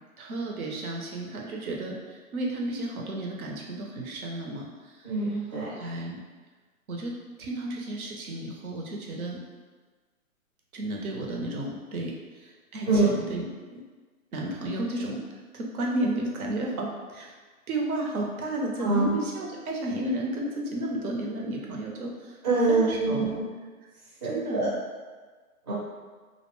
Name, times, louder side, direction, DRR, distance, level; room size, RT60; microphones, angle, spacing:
voice 1, 0.2-5.1 5.6-6.2 6.9-9.4 10.7-13.8 14.3-15.2 15.5-17.3 17.7-22.4 22.7-23.3 23.8-23.9 24.3-24.7, right 1 dB, 70° right, -1 dB, 0.7 m, -32 dB
voice 2, 5.0-5.7 12.9-13.1 18.8-19.1 22.4-23.4 24.2-24.7 25.7-25.8, right 3 dB, 30° right, -9 dB, 0.6 m, -24 dB
2.5 x 2.1 x 3.0 m, 1.4 s
hypercardioid pair, 160°, 44 cm